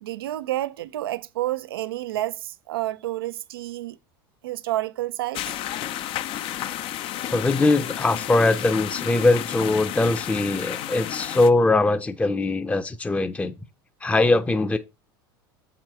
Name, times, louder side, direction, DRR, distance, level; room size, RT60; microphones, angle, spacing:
voice 1, 0.0-4.0 4.4-5.6, right 15 dB, 75° right, 0.5 m, -29 dB
sound 1, 5.3-11.5, left 12 dB, 45° left, 0.6 m, -32 dB
voice 2, 7.3-13.5 14.0-14.8, left 2 dB, 10° left, 0.7 m, -21 dB
7.3 x 4.9 x 4.4 m
hypercardioid pair, 85°, 12 cm